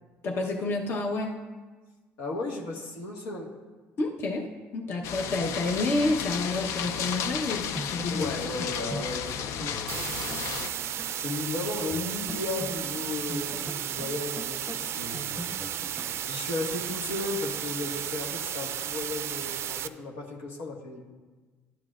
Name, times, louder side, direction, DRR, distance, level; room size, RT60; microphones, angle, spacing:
voice 1, 0.2-1.4 4.0-8.3, left 2 dB, 50° left, 0 dB, 1.0 m, -29 dB
voice 2, 2.2-3.5 8.1-10.6 11.1-15.5 16.3-21.0, left 2 dB, 90° left, -1 dB, 1.6 m, -35 dB
sound 1, 5.0-10.7, left 8 dB, 70° left, 0.5 m, -33 dB
sound 2, 7.4-7.5 7.7-11.2 11.4-11.5 11.9-16.2, right 1 dB, 5° right, 0.7 m, -41 dB
sound 3, 9.9-19.9, right 10 dB, 55° right, 0.4 m, -34 dB
12.5 x 9.3 x 2.5 m, 1.3 s
cardioid pair, 100°, 5 cm